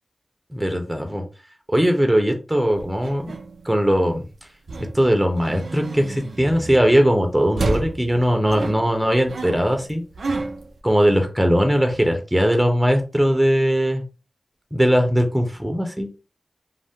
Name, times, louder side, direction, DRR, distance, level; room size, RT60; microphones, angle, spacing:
voice 1, 0.5-1.2 1.7-3.3 3.6-4.2 4.9-10.0 10.8-14.0 14.7-16.1, equal, 10° right, 4 dB, 0.7 m, -19 dB
sound 1, 2.7-4.1 4.7-7.1 7.6-10.8, right 2 dB, 85° right, 0.4 m, -31 dB
2.6 x 2.0 x 3.5 m, 0.33 s
wide cardioid pair, 60°, 0 cm